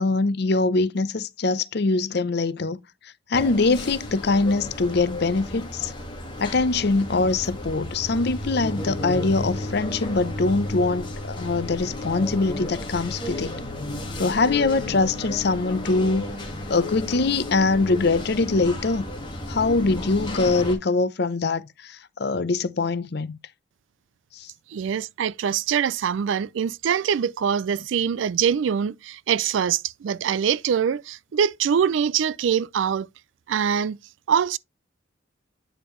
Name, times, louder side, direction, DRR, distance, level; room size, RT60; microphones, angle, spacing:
voice 1, 0.0-2.8 3.0-5.9 6.4-13.6 14.2-16.2 16.7-19.0 19.5-23.4 24.3-24.5, left 3 dB, 55° left, 0.6 m, -23 dB
sound 1, 3.3-20.7, left 1 dB, 25° left, 1.7 m, -33 dB
voice 2, 24.7-33.1 33.5-34.0 34.3-34.6, right 8 dB, 70° right, 0.3 m, -24 dB
9.0 x 5.0 x 3.1 m
head